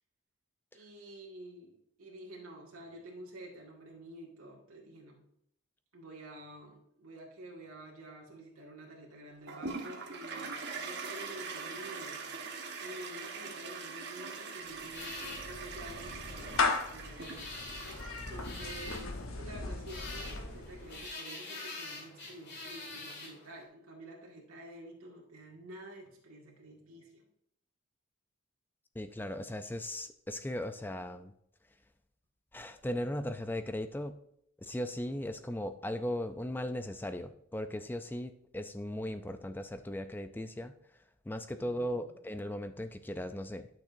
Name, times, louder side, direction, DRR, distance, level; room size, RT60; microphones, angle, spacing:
voice 1, 0.7-5.2 5.9-12.2 12.8-17.6 18.3-27.2 41.5-42.2, right 1 dB, 85° right, -3 dB, 1.9 m, -49 dB
Toilet flush, 9.5-18.7, right 4 dB, 50° right, 1.1 m, -42 dB
Clapping / Meow, 14.7-21.1, left 4 dB, 70° left, 1.0 m, -37 dB
sound 1, 14.9-23.6, left 3 dB, 50° left, 2.3 m, -46 dB
voice 2, 29.0-31.3 32.5-34.2 34.6-40.7 41.3-43.7, left 1 dB, 10° left, 10 dB, 0.4 m, -37 dB
11.5 x 6.2 x 2.6 m, 0.73 s
head